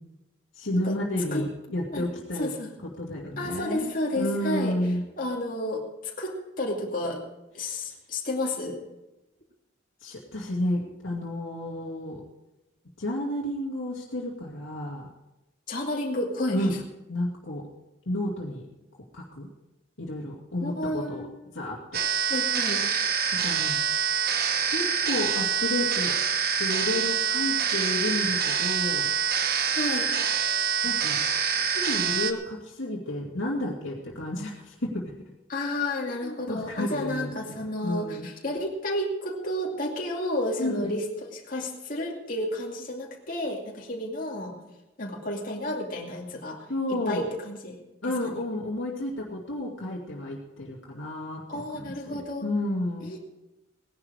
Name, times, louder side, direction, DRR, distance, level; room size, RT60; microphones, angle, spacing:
voice 1, 0.6-2.5 3.0-5.0 7.6-7.7 10.0-12.2 13.0-15.1 16.5-16.7 17.1-17.6 18.1-18.7 19.1-19.5 20.0-21.3 21.5-22.0 23.3-24.0 24.7-26.2 26.4-29.1 30.8-31.2 31.6-35.0 36.2-38.3 40.6-40.9 46.7-47.3 48.0-53.1, left 1 dB, 80° left, -3 dB, 2.4 m, -31 dB
voice 2, 2.4-2.7 3.4-4.8 5.2-7.2 7.5-8.8 15.7-16.7 20.6-21.3 22.3-22.8 29.7-30.1 35.5-44.6 45.0-46.7 47.1-47.8 48.2-48.4 51.5-52.5 53.0-53.2, left 1 dB, 45° left, -1 dB, 2.5 m, -31 dB
sound 1, 21.9-32.3, right 7 dB, 50° right, 1.1 m, -26 dB
18.0 x 11.0 x 4.8 m, 0.98 s
head